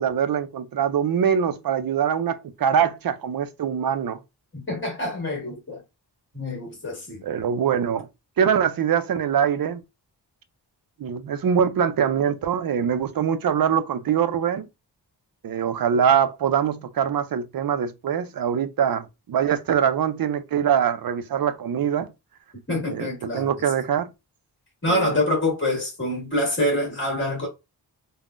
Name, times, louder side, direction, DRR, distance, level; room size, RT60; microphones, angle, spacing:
voice 1, 0.0-4.2 7.2-8.1 8.4-9.8 11.0-14.7 15.4-22.1 22.9-24.1 24.9-25.1, right 8 dB, 55° right, 0.5 m, -23 dB
voice 2, 4.5-5.8 6.3-7.2 22.7-23.5 24.8-27.5, left 1 dB, 25° left, 1.6 m, -26 dB
3.5 x 2.2 x 2.4 m
wide cardioid pair, 130°, 43 cm